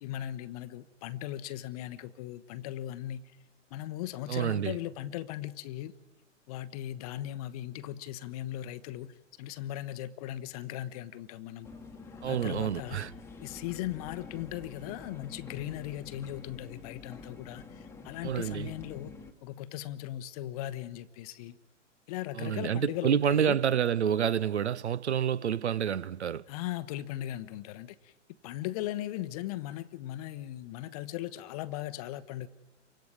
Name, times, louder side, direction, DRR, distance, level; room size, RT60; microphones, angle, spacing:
voice 1, 0.0-3.2 3.7-5.9 6.5-11.7 12.3-13.1 13.4-19.1 19.4-21.6 22.1-23.6 26.5-28.1 28.4-32.5, left 13 dB, 30° left, 0.9 m, -38 dB
voice 2, 4.3-4.8 12.2-13.1 18.2-18.7 22.3-26.4, right 9 dB, 65° right, 0.8 m, -28 dB
sound 1, 11.6-19.3, left 4 dB, 5° left, 1.3 m, -47 dB
29.5 x 24.5 x 4.9 m
figure-of-eight pair, 115°, 37 cm